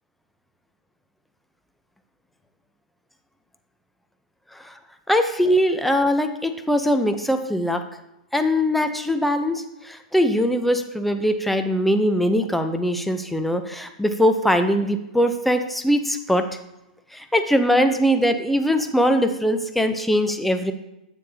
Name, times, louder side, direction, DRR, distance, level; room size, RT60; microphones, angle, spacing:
voice 1, 5.1-7.8 8.3-16.5 17.1-20.7, equal, ahead, 7 dB, 0.6 m, -21 dB
9.5 x 7.2 x 2.8 m, 0.88 s
hypercardioid pair, 120°, 5 cm